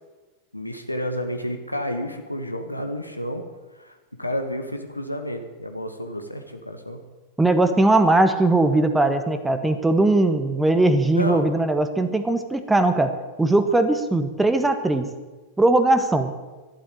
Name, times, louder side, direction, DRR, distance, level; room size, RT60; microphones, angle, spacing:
voice 1, 0.5-3.4 3.7-7.0 11.1-11.4, equal, 85° left, 6 dB, 1.6 m, -30 dB
voice 2, 7.4-13.1 13.4-15.1 15.6-16.3, right 2 dB, 10° right, 9 dB, 1.4 m, -19 dB
12.0 x 11.5 x 9.0 m, 1.2 s
figure-of-eight pair, 90°, 0 cm